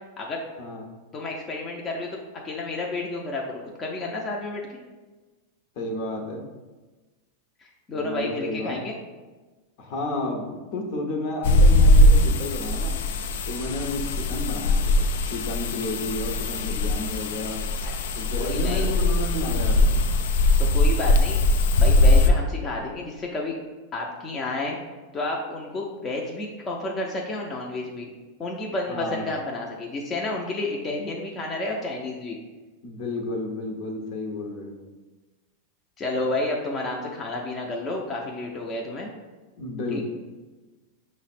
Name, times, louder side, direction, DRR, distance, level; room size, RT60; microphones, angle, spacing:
voice 1, 1.1-4.8 7.6-8.9 17.8-17.9 18.3-18.9 20.6-21.4 21.8-23.6 23.9-24.8 25.1-28.1 28.4-32.4 36.0-39.1 39.9-40.0, left 2 dB, 25° left, -1 dB, 0.5 m, -31 dB
voice 2, 5.8-6.5 8.0-8.8 9.8-12.9 13.5-17.6 18.2-20.0 28.9-29.3 32.8-34.8 39.6-40.0, left 2 dB, 55° left, 2 dB, 0.8 m, -32 dB
sound 1, 11.4-22.3, left 1 dB, 75° left, 0.4 m, -20 dB
5.4 x 2.1 x 4.2 m, 1.2 s
hypercardioid pair, 125°, 0 cm